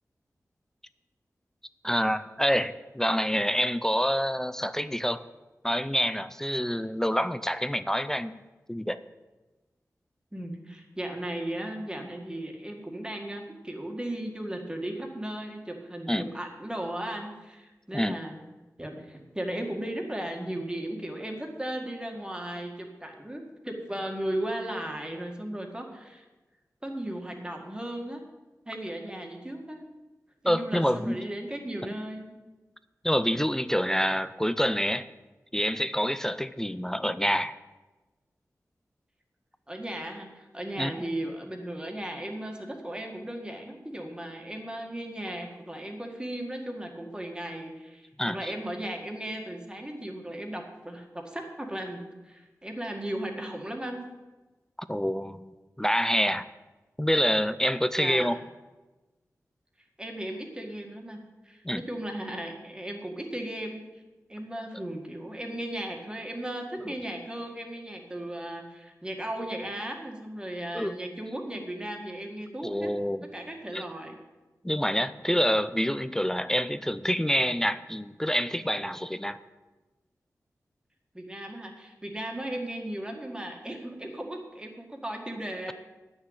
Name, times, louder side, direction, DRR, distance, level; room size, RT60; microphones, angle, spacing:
voice 1, 1.8-5.2 5.6-8.4 8.7-9.0 16.1-16.3 17.9-18.2 30.4-31.3 33.0-35.1 35.5-37.5 40.8-40.9 48.2-48.5 54.8-55.5 55.8-56.4 57.0-58.4 61.6-61.8 66.9-67.0 70.7-70.9 72.6-73.3 73.7-73.9 74.6-79.4, equal, 10° left, 13 dB, 0.4 m, -27 dB
voice 2, 10.3-18.4 18.8-26.2 26.8-28.2 28.7-29.9 30.4-32.4 39.7-52.0 52.3-54.0 58.0-58.3 60.0-63.8 64.3-72.9 73.3-74.2 81.1-85.7, right 1 dB, 15° right, 2 dB, 1.8 m, -36 dB
9.6 x 6.4 x 8.7 m, 1.2 s
wide cardioid pair, 85°, 6 cm